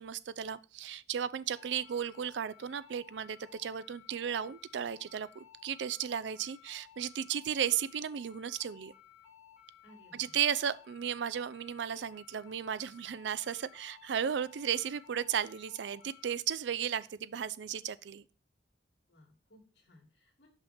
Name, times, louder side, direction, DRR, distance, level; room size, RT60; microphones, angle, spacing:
voice 1, 0.0-8.9 10.1-18.2, right 8 dB, 75° right, 0.4 m, -35 dB
sound 1, 1.5-16.3, left 9 dB, 20° left, 3.2 m, -58 dB
voice 2, 9.8-10.4 19.1-20.5, equal, 75° left, 2.6 m, -61 dB
5.8 x 5.6 x 3.3 m
head